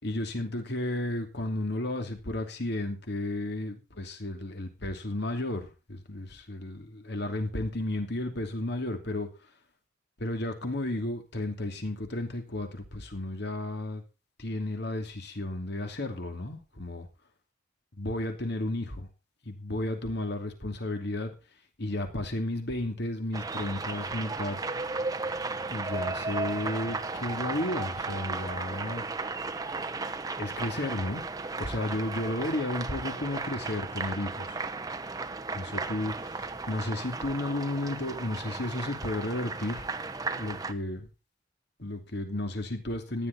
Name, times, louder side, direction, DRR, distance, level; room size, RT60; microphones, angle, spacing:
voice 1, 0.0-9.3 10.2-14.0 14.4-17.1 18.0-19.1 19.4-21.3 21.8-24.6 25.7-29.1 30.4-31.2 31.6-34.6 35.5-39.9 40.3-41.1 41.8-43.3, left 1 dB, 55° left, 6 dB, 2.8 m, -33 dB
sound 1, 23.3-40.7, right 3 dB, 20° right, 0.9 m, -35 dB
15.5 x 11.0 x 4.1 m, 0.29 s
head